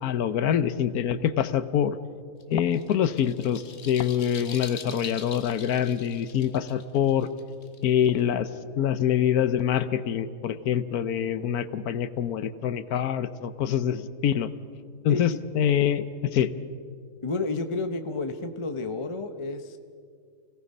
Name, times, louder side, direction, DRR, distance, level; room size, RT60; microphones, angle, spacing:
voice 1, 0.0-2.0 2.5-7.3 7.8-8.5 8.8-14.5 15.0-16.5, left 9 dB, 70° left, 13 dB, 1.2 m, -25 dB
sound 1, 2.4-8.2, left 6 dB, 45° left, 1.3 m, -43 dB
voice 2, 17.2-19.8, left 3 dB, 25° left, 7 dB, 0.7 m, -31 dB
28.0 x 17.5 x 5.5 m, 2.2 s
omnidirectional pair, 1.7 m